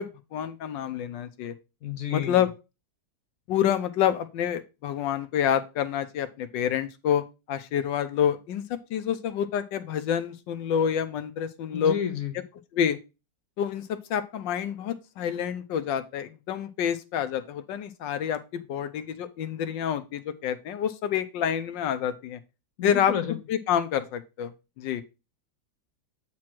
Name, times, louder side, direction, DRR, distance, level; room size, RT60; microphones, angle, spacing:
voice 1, 0.0-1.5 2.1-2.5 3.5-8.6 8.9-12.0 12.7-13.0 13.6-22.4 22.8-23.1 23.5-24.5 24.8-25.0, left 9 dB, 80° left, 1.4 m, -28 dB
voice 2, 1.8-2.5 11.7-12.3 22.8-23.4, left 9 dB, 65° left, 0.9 m, -30 dB
8.4 x 3.1 x 5.9 m
omnidirectional pair, 2.0 m